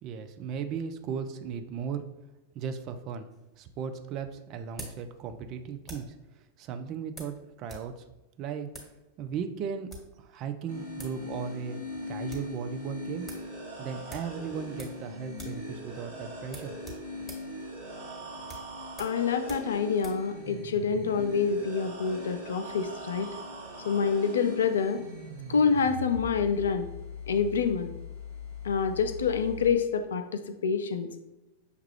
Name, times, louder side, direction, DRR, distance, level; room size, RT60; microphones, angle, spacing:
voice 1, 0.0-2.0 2.5-3.3 3.6-6.1 6.6-7.9 8.4-8.7 9.2-9.9 10.2-11.8 12.1-13.3 13.8-16.7, right 7 dB, 40° right, 7 dB, 0.4 m, -36 dB
sound 1, 3.3-6.2 7.1-8.2 8.7-8.9 9.7-10.2 10.7-10.8 11.0-11.2 11.5-11.6 11.9-12.5 12.9-13.0 13.3-13.5 14.1-15.1 15.3-15.7 15.9-16.0 16.4-20.3, left 1 dB, 10° left, 1.4 m, -47 dB
sound 2, 10.7-29.7, left 1 dB, 65° right, 1.4 m, -40 dB
voice 2, 19.0-23.4 23.8-25.0 25.5-26.9 27.3-28.0 28.6-31.1, left 6 dB, 65° left, 8 dB, 0.4 m, -27 dB
6.5 x 2.3 x 3.2 m, 1.0 s
figure-of-eight pair, 90°, 0 cm